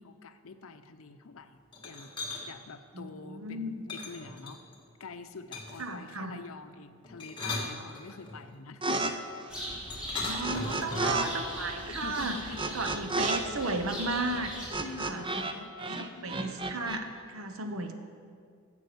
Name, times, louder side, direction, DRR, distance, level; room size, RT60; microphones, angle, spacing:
voice 1, 0.0-2.1 2.5-4.6 5.0-9.2 11.9-12.8 14.8-16.4 17.6-17.9, left 4 dB, 70° left, 10 dB, 0.6 m, -46 dB
sound 1, 1.7-2.4 3.9-4.8 5.5-5.9 7.0-8.4 9.9-11.2, left 2 dB, 20° left, 1.7 m, -37 dB
voice 2, 2.9-3.8 5.8-6.4 10.2-12.4 12.7-14.5 15.0-15.3 16.0-17.9, right 2 dB, 75° right, 7 dB, 1.0 m, -34 dB
sound 2, 8.8-9.1 9.4-11.3 11.5-15.5 15.8-17.0, right 2 dB, 25° right, 0.6 m, -33 dB
sound 3, 9.5-14.7, equal, 5° right, 2.6 m, -40 dB
11.0 x 7.4 x 6.8 m, 2.3 s
head